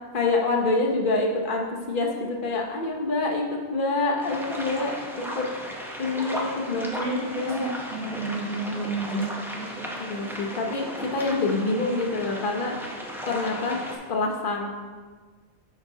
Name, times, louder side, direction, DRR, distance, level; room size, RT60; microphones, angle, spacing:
voice 1, 0.1-3.4 3.7-5.5 6.0-7.7 10.0-12.7 13.3-13.8 14.1-14.8, left 3 dB, 50° left, 0 dB, 1.0 m, -26 dB
sound 1, 4.2-14.0, equal, 5° right, 0.5 m, -36 dB
voice 2, 6.7-9.9, right 3 dB, 85° right, -8 dB, 2.7 m, -32 dB
8.0 x 5.8 x 2.7 m, 1.5 s
omnidirectional pair, 1.2 m